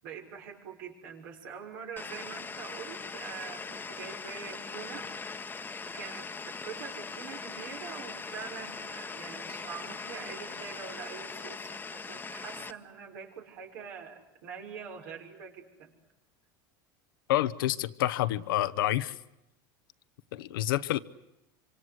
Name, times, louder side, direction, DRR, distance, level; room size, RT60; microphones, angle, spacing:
voice 1, 0.0-5.1 5.8-15.9, right 6 dB, 75° right, 6.1 m, -44 dB
sound 1, 2.0-12.7, left 4 dB, 15° left, 1.2 m, -41 dB
voice 2, 17.3-19.2 20.3-21.0, left 14 dB, 85° left, 1.0 m, -28 dB
26.5 x 25.5 x 8.0 m
supercardioid pair, 105°, 11 cm